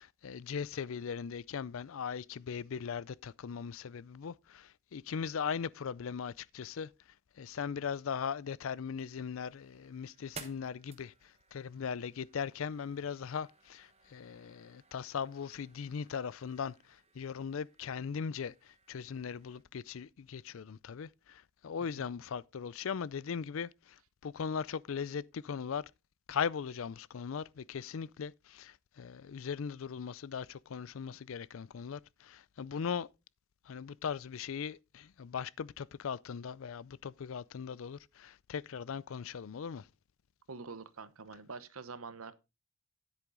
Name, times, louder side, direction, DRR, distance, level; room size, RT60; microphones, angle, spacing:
voice 1, 0.0-6.9 7.4-25.9 26.3-33.1 33.6-39.9, left 6 dB, 70° left, 0.4 m, -39 dB
sound 1, 8.7-19.6, right 5 dB, 30° right, 1.0 m, -57 dB
voice 2, 40.5-42.3, right 4 dB, 80° right, 0.9 m, -46 dB
10.0 x 8.2 x 3.8 m
head